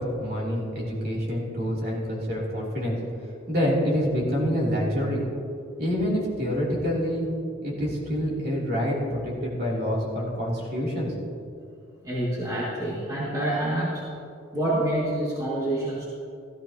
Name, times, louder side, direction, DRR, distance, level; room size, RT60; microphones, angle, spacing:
voice 1, 0.0-3.0 3.5-5.2 5.8-7.3 7.6-11.1, equal, 50° right, -5 dB, 3.1 m, -27 dB
voice 2, 12.0-14.0 14.5-16.1, right 1 dB, 20° right, -7 dB, 2.1 m, -27 dB
14.5 x 14.0 x 2.9 m, 2.5 s
head